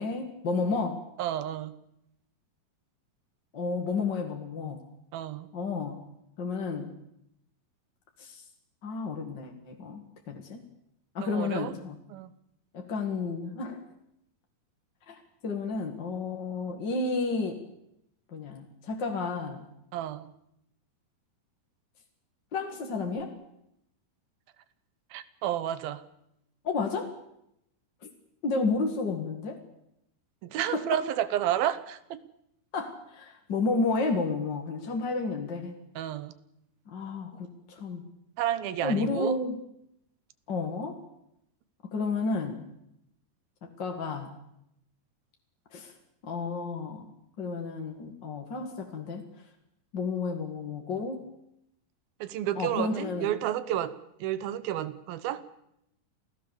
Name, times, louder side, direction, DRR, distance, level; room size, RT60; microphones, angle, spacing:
voice 1, 0.0-1.0 3.5-4.8 5.5-6.0 6.4-6.9 8.2-8.4 8.8-10.6 11.1-12.0 12.7-13.8 15.1-17.6 18.3-19.6 22.5-23.3 26.6-27.1 28.4-29.6 30.7-31.0 32.7-35.8 36.9-38.1 38.8-39.6 40.5-41.0 41.8-42.6 43.6-44.3 45.7-45.9 46.2-47.1 47.4-49.3 49.9-51.3 52.6-53.3, left 4 dB, 40° left, 2 dB, 1.7 m, -31 dB
voice 2, 1.2-1.7 5.1-5.5 11.2-11.7 12.1-12.3 19.9-20.3 25.1-26.0 30.4-32.2 36.0-36.3 38.4-39.4 52.2-53.9 54.2-55.4, right 11 dB, 70° right, 14 dB, 2.7 m, -31 dB
28.0 x 16.5 x 7.0 m, 0.79 s
omnidirectional pair, 4.7 m